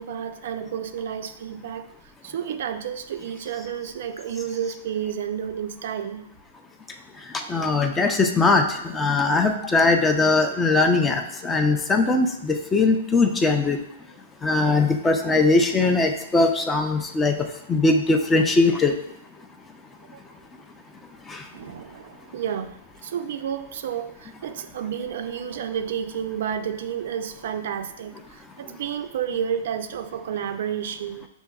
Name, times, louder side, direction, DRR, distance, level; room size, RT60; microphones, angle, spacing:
voice 1, 0.0-1.9 2.2-6.3 7.4-7.5 13.6-13.7 20.1-20.2 21.5-31.3, right 8 dB, 65° right, 8 dB, 0.4 m, -31 dB
voice 2, 7.3-13.8 14.4-17.4 17.7-18.9 21.3-21.4, left 3 dB, 15° left, 5 dB, 0.4 m, -20 dB
6.9 x 2.7 x 2.3 m, 0.78 s
hypercardioid pair, 150°, 0 cm